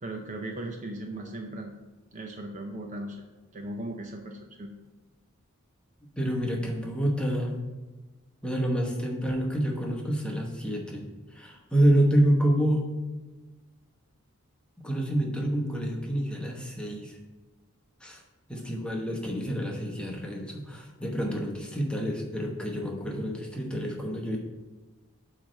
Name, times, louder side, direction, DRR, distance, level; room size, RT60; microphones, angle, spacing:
voice 1, 0.0-1.7 2.1-3.3 3.5-4.7, right 1 dB, 35° right, 3 dB, 0.6 m, -37 dB
voice 2, 6.2-7.6 8.4-11.1 11.3-12.9 14.8-17.2 18.0-18.2 18.5-24.4, right 1 dB, 5° left, 0 dB, 1.0 m, -28 dB
8.2 x 3.2 x 6.2 m, 1.2 s
head